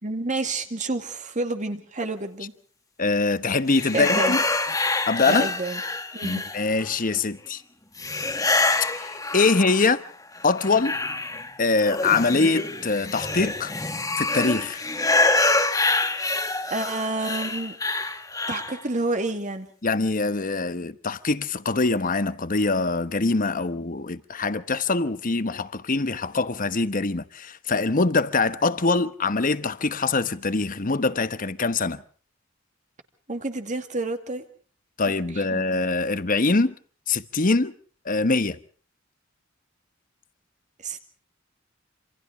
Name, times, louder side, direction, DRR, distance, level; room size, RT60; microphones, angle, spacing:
voice 1, 0.0-2.5 3.9-4.4 5.3-5.8 6.1-6.5 16.7-17.8 18.5-19.7 33.3-34.4 35.3-35.8 40.8-41.1, right 2 dB, 40° right, 2.3 m, -29 dB
voice 2, 3.0-4.4 5.1-5.5 6.2-7.6 9.0-10.0 10.4-11.0 11.6-13.7 14.2-14.8 19.8-32.0 35.0-36.7 37.1-37.7 38.0-38.6, left 3 dB, 45° left, 1.1 m, -23 dB
sound 1, 3.7-6.9 8.0-10.0 10.4-18.8, left 2 dB, 20° left, 1.8 m, -26 dB
27.0 x 27.0 x 3.6 m
head